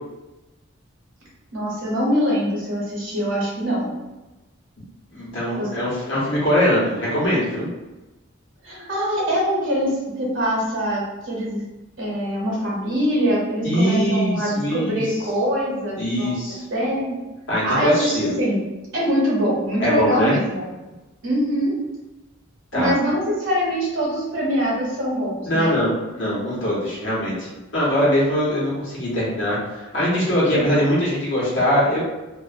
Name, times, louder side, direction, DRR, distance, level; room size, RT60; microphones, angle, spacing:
voice 1, 1.5-3.9 5.6-5.7 8.6-11.6 12.0-16.3 16.7-17.2 17.6-18.6 18.9-20.7 21.2-21.8 22.7-25.8 30.5-30.6, equal, 65° right, -5 dB, 0.9 m, -23 dB
voice 2, 5.1-7.7 13.6-15.0 16.0-16.6 17.5-18.3 19.8-20.3 22.7-22.9 25.5-32.0, equal, 60° left, -7 dB, 1.0 m, -22 dB
2.5 x 2.1 x 2.5 m, 1.1 s
head